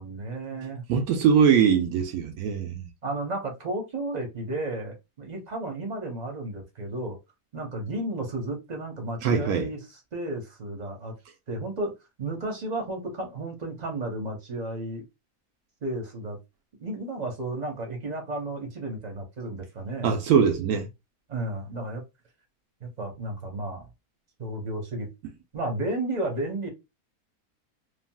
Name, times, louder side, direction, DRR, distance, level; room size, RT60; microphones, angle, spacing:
voice 1, 0.0-0.8 3.0-7.2 7.5-9.8 10.1-11.1 11.5-11.9 12.2-15.0 15.8-16.4 16.8-20.2 21.3-22.0 22.8-23.9 24.4-25.1 25.5-26.7, right 2 dB, 35° right, 0.8 m, -33 dB
voice 2, 0.9-2.9 9.2-9.7 20.0-20.9, right 7 dB, 80° right, 1.1 m, -22 dB
3.4 x 2.4 x 2.2 m
omnidirectional pair, 1.6 m